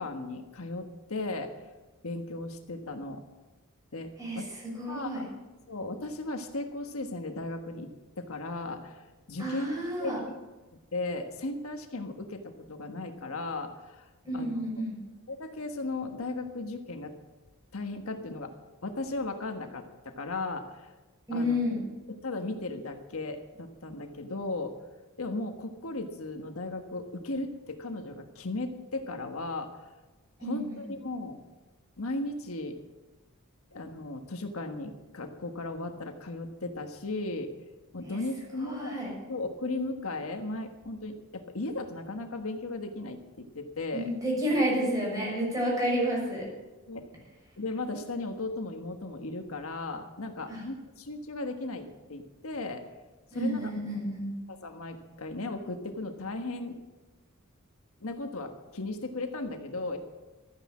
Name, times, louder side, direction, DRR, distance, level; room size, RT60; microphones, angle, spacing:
voice 1, 0.0-1.5 2.0-3.2 3.9-4.1 4.3-4.4 4.9-5.3 5.7-7.9 8.2-9.0 9.3-10.4 10.9-14.0 14.3-14.5 15.3-17.1 17.7-18.5 18.8-20.9 21.3-21.6 22.1-24.7 25.2-29.7 30.4-31.4 32.0-32.8 33.7-37.5 37.9-39.0 39.3-44.1 46.9-47.1 47.6-52.8 53.3-53.7 54.5-56.8 58.0-60.0, left 2 dB, 85° left, 6 dB, 1.4 m, -36 dB
voice 2, 4.8-5.2 9.4-10.2 14.2-14.9 21.3-21.8 30.4-30.8 38.1-38.2 38.6-39.1 43.9-46.4 50.5-50.6 53.3-54.3, equal, 15° right, -4 dB, 6.5 m, -30 dB
14.0 x 9.9 x 7.4 m, 1.2 s
head